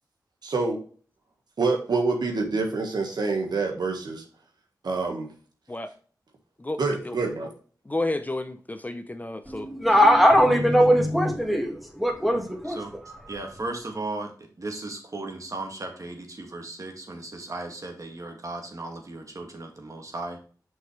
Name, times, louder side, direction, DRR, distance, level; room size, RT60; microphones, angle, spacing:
voice 1, 0.4-0.8 1.6-4.2 4.8-5.3 6.8-7.5, right 3 dB, 80° right, 2 dB, 1.5 m, -26 dB
voice 2, 7.9-9.7, left 2 dB, 25° left, 9 dB, 0.6 m, -31 dB
voice 3, 9.5-13.0, equal, ahead, 2 dB, 2.0 m, -20 dB
voice 4, 13.3-14.3 14.6-20.4, right 2 dB, 50° right, 3 dB, 1.9 m, -36 dB
6.3 x 5.4 x 3.2 m, 0.43 s
cardioid pair, 55°, 7 cm